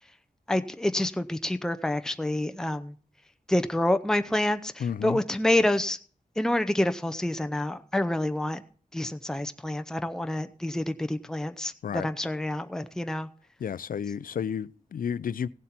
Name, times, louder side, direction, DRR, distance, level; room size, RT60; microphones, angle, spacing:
voice 1, 0.5-2.9 3.5-6.0 6.4-8.6 8.9-11.7 12.0-13.3, left 1 dB, 5° left, 0.6 m, -27 dB
voice 2, 4.8-5.2 11.8-12.1 13.6-15.5, left 7 dB, 75° left, 0.4 m, -31 dB
16.5 x 7.5 x 4.3 m
wide cardioid pair, 75°, 14 cm